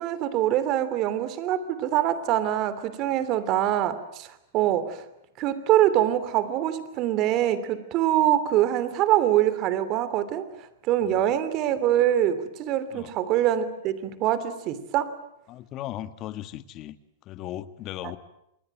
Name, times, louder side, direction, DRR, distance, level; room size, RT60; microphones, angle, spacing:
voice 1, 0.0-5.1 5.4-15.1 18.0-18.1, right 12 dB, 40° right, 14 dB, 3.0 m, -24 dB
voice 2, 15.5-17.0 17.2-18.2, left 13 dB, 40° left, 12 dB, 1.6 m, -37 dB
28.0 x 21.0 x 8.9 m, 0.79 s
hypercardioid pair, 125°, 0 cm